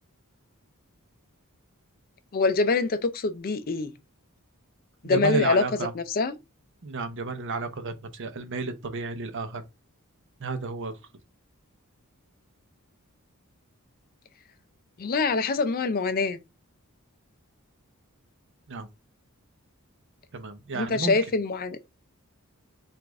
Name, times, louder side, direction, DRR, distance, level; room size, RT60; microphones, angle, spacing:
voice 1, 2.3-3.9 5.0-5.6 5.9-6.4 15.0-16.4 20.7-21.8, left 4 dB, 40° left, 0.5 m, -25 dB
voice 2, 5.0-5.9 6.8-9.6 10.4-10.9 18.7-18.9 20.3-21.2, right 3 dB, 60° right, 0.7 m, -31 dB
4.9 x 2.5 x 3.5 m
head